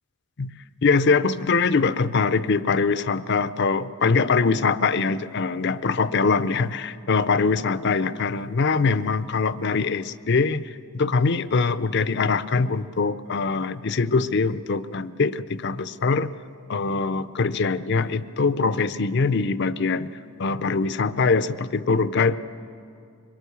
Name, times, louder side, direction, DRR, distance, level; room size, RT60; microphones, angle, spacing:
voice 1, 0.8-16.3 16.7-22.4, left 4 dB, 55° left, 14 dB, 0.6 m, -23 dB
24.0 x 21.5 x 7.0 m, 2.5 s
head